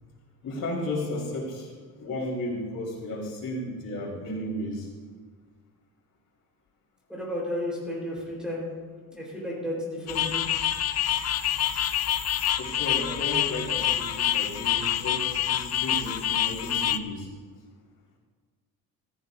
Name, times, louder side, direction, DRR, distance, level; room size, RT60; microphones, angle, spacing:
voice 1, 0.4-1.7 2.0-4.9 12.6-17.3, left 1 dB, 60° left, -3 dB, 4.5 m, -33 dB
voice 2, 7.1-8.7 9.1-10.4, left 1 dB, ahead, -4 dB, 4.2 m, -32 dB
sound 1, 10.1-17.0, left 10 dB, 40° left, 0.5 m, -27 dB
16.5 x 14.5 x 2.7 m, 1.5 s
cardioid pair, 150°, 38 cm